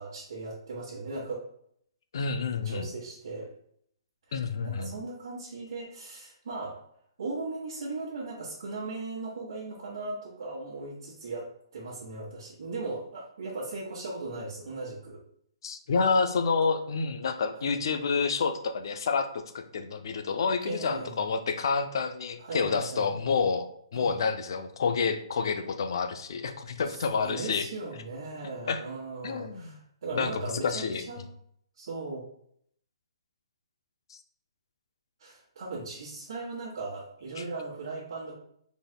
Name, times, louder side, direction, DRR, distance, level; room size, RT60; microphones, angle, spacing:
voice 1, 0.0-1.4 2.6-3.5 4.3-6.8 7.2-15.2 17.6-17.8 20.6-21.2 22.4-23.1 23.9-24.2 26.8-31.3 31.8-32.2 35.2-38.3, right 3 dB, 60° right, -7 dB, 1.4 m, -38 dB
voice 2, 2.1-2.9 4.3-4.9 15.6-27.7 28.7-28.8 29.2-29.8 30.1-31.0 34.1-34.2 37.4-37.5, left 5 dB, 50° left, 9 dB, 0.5 m, -29 dB
5.2 x 4.1 x 2.2 m, 0.68 s
hypercardioid pair, 170°, 3 cm